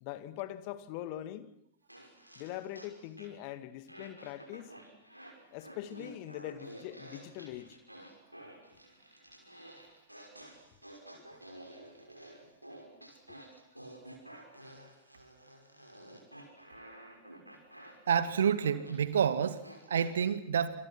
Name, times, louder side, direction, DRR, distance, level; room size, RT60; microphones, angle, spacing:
voice 1, 0.0-1.5 2.4-4.7 5.5-7.8, left 13 dB, 45° left, 2.0 m, -42 dB
sound 1, 1.9-3.5 3.9-20.1, right 1 dB, 90° right, 5.7 m, -51 dB
voice 2, 18.1-20.7, right 8 dB, 65° right, 2.0 m, -29 dB
27.5 x 27.5 x 6.2 m
figure-of-eight pair, 90°, 0 cm